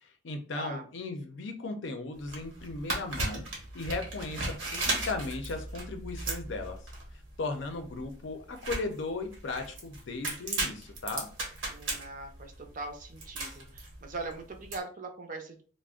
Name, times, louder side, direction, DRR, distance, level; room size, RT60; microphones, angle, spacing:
voice 1, 0.0-3.4 3.7-6.8 7.4-11.3, left 3 dB, 75° left, 6 dB, 0.5 m, -37 dB
voice 2, 0.5-0.9 11.7-15.6, right 3 dB, 45° right, 4 dB, 0.5 m, -41 dB
sound 1, 2.2-14.8, right 2 dB, 85° right, 1.0 m, -36 dB
2.4 x 2.0 x 3.5 m, 0.41 s
head